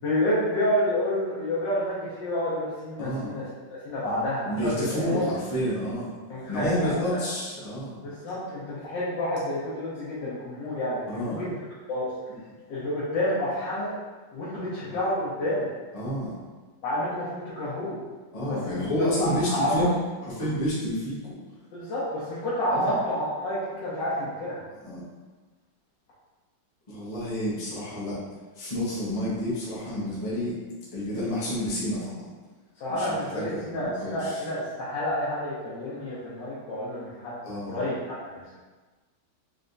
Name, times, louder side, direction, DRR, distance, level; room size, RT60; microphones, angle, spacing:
voice 1, 0.0-3.4 3.8-5.3 6.3-7.2 8.0-11.5 11.9-12.1 12.7-13.9 14.3-15.7 16.8-18.0 18.5-18.8 19.2-19.9 21.7-24.6 32.8-38.0 38.2-38.4, left 1 dB, 75° left, -10 dB, 1.6 m, -29 dB
voice 2, 3.0-3.3 4.0-6.1 6.5-8.0 11.1-11.4 14.8-14.9 15.9-16.4 18.3-19.9 20.2-21.3 22.7-22.9 24.8-25.0 26.9-28.2 28.5-30.6 30.9-32.3 32.9-34.4 37.4-37.8, equal, 25° left, -9 dB, 0.8 m, -30 dB
4.2 x 3.3 x 2.6 m, 1.3 s
omnidirectional pair, 2.0 m